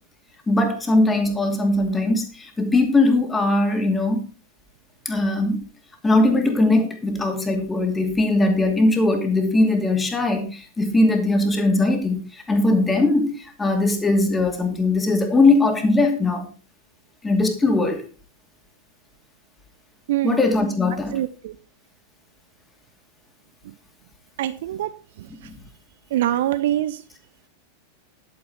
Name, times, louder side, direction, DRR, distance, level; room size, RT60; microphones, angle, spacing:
voice 1, 0.5-4.2 5.0-5.6 6.0-16.5 17.2-18.0 20.2-21.1 25.4-25.5, left 2 dB, 10° left, 4 dB, 2.6 m, -20 dB
voice 2, 20.1-20.4 21.1-21.6 23.6-23.8 24.4-25.5 26.1-27.0, right 13 dB, 55° right, 14 dB, 0.5 m, -25 dB
10.5 x 9.3 x 4.3 m, 0.36 s
figure-of-eight pair, 90°, 0 cm